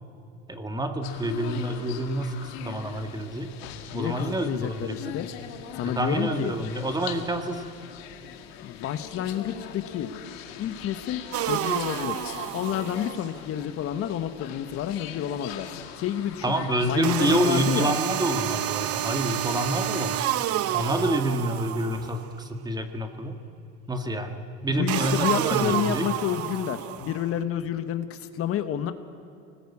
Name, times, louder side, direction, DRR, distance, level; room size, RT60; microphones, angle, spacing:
voice 1, 0.5-3.5 3.9-5.1 5.9-7.6 16.4-20.2 20.7-23.4 23.9-26.1, right 1 dB, 15° right, 7 dB, 1.7 m, -28 dB
sound 1, 1.0-17.4, left 9 dB, 85° left, 2.1 m, -41 dB
voice 2, 3.9-5.3 5.7-6.5 8.6-10.1 10.6-12.2 12.5-16.5 16.8-17.9 24.7-28.9, left 10 dB, 50° left, 10 dB, 1.2 m, -29 dB
sound 2, 11.3-13.3 17.0-22.3 24.9-27.3, right 12 dB, 50° right, 0.9 m, -29 dB
24.5 x 19.5 x 8.5 m, 2.7 s
supercardioid pair, 115°, 30 cm